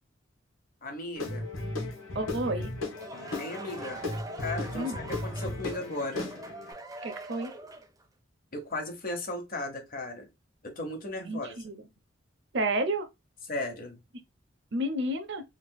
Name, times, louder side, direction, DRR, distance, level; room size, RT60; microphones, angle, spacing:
voice 1, 0.8-1.5 3.4-4.0 4.4-6.3 8.5-10.3 10.6-11.6 13.5-14.0, left 2 dB, 45° left, 1.0 m, -36 dB
Guitar / Drum, 1.2-6.7, left 2 dB, 85° left, 1.1 m, -36 dB
voice 2, 2.1-2.7 4.7-5.0 7.0-7.5 11.2-11.8 12.5-13.1 14.7-15.4, right 1 dB, 60° right, 0.6 m, -30 dB
sound 1, 2.7-8.0, right 2 dB, 20° right, 0.5 m, -43 dB
3.2 x 2.9 x 2.2 m
head